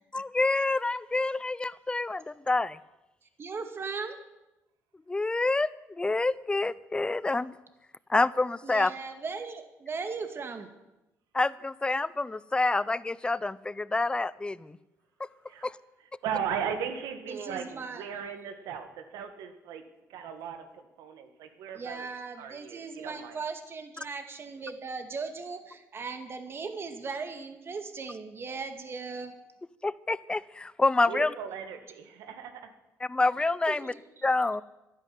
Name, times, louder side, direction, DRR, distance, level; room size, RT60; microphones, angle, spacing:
voice 1, 0.1-2.8 5.1-7.5 8.1-8.9 11.3-14.8 15.6-15.8 29.8-31.3 33.1-33.9 34.2-34.6, left 3 dB, 15° left, 19 dB, 0.6 m, -27 dB
voice 2, 3.4-4.2 8.6-10.7 17.3-18.0 21.7-29.3 33.7-34.2, right 4 dB, 40° right, 7 dB, 2.1 m, -38 dB
voice 3, 16.2-19.8 20.1-22.1 22.4-23.4 31.1-32.7, right 7 dB, 85° right, 7 dB, 2.0 m, -37 dB
12.0 x 10.5 x 9.5 m, 0.98 s
cardioid pair, 90°, 6 cm